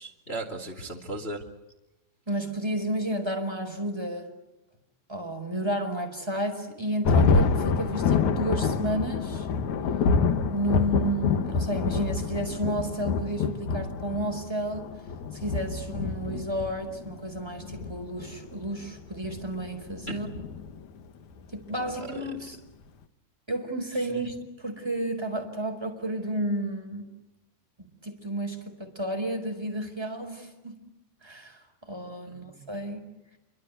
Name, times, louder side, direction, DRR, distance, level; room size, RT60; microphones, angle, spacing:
voice 1, 0.0-1.4 20.1-20.2 21.8-22.2 32.3-32.6, right 2 dB, 20° left, 4 dB, 2.1 m, -37 dB
voice 2, 2.3-4.3 5.1-9.5 10.5-14.8 15.3-20.3 21.5-22.6 23.5-27.1 28.0-30.8 31.2-33.1, right 1 dB, 5° right, 4 dB, 4.3 m, -32 dB
Thunder, 7.0-21.0, left 5 dB, 65° left, 1.9 m, -27 dB
28.5 x 25.0 x 8.2 m, 0.99 s
omnidirectional pair, 5.5 m